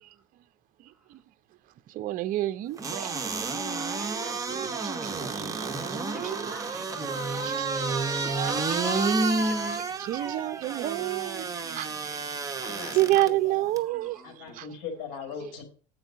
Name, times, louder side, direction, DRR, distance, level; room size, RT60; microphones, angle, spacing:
voice 1, 1.9-3.1 4.7-6.0 7.3-8.5 10.0-12.0 12.6-14.2 14.5-14.7, right 16 dB, 45° right, 0.5 m, -30 dB
sound 1, 2.8-13.3 13.8-13.9, right 3 dB, 20° right, 0.9 m, -30 dB
voice 2, 3.7-4.8 6.0-7.6 8.2-9.9 11.0-11.1 12.8-13.1 13.8-14.6, right 2 dB, ahead, 1.2 m, -46 dB
voice 3, 12.6-13.7 14.2-15.6, left 6 dB, 80° left, 2.2 m, -40 dB
8.9 x 4.5 x 6.6 m
cardioid pair, 135°, 19 cm